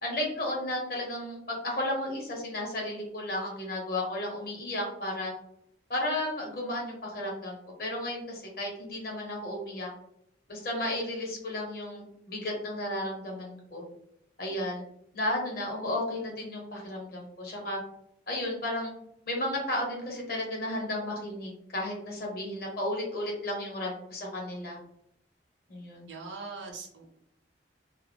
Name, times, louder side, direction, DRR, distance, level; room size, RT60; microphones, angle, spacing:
voice 1, 0.0-5.3 5.9-9.9 10.5-13.8 14.4-14.8 15.1-17.8 18.3-18.9 19.3-24.8 25.7-26.1, left 1 dB, 50° left, -1 dB, 0.9 m, -33 dB
voice 2, 26.0-27.1, right 4 dB, 80° right, 0 dB, 0.6 m, -41 dB
2.3 x 2.1 x 3.3 m, 0.75 s
head